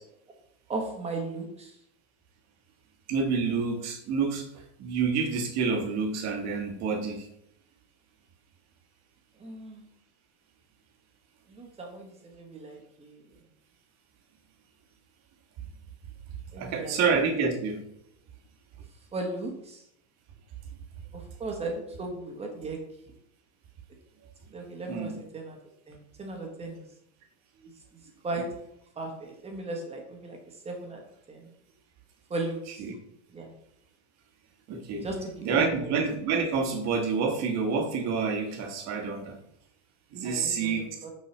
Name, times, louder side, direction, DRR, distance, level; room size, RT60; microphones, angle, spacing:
voice 1, 0.7-1.8 9.4-9.9 11.5-13.3 16.5-17.0 19.1-19.8 21.1-22.8 24.5-25.6 25.9-26.9 27.9-28.5 29.0-30.4 30.6-31.0 31.3-31.5 32.3-32.8 33.3-33.5 34.9-35.9 40.2-41.1, right 2 dB, 15° right, 2 dB, 1.1 m, -36 dB
voice 2, 3.1-7.3 16.6-17.8 24.9-25.2 32.8-32.9 34.7-35.1 35.4-39.4 40.1-40.9, right 5 dB, 45° right, 3 dB, 1.3 m, -28 dB
5.8 x 5.5 x 3.2 m, 0.74 s
supercardioid pair, 145°, 37 cm